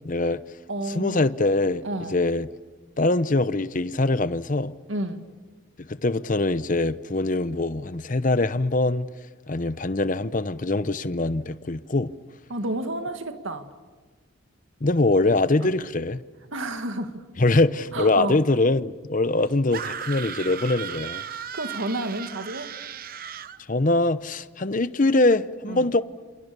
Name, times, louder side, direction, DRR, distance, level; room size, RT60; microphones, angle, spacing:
voice 1, 0.0-0.4 0.9-1.8 2.1-2.5 3.0-4.7 5.9-9.1 9.5-12.1 14.8-16.2 17.4-21.2 23.7-26.0, left 2 dB, 40° left, 0.8 m, -23 dB
voice 2, 0.7-1.3 1.8-2.2 4.9-5.2 12.5-13.7 15.6-15.7 16.5-17.2 17.9-18.4 21.5-22.7 25.7-25.9, right 1 dB, 70° right, 2.0 m, -30 dB
sound 1, 19.7-23.6, right 8 dB, 45° right, 0.8 m, -35 dB
28.5 x 28.0 x 6.9 m
head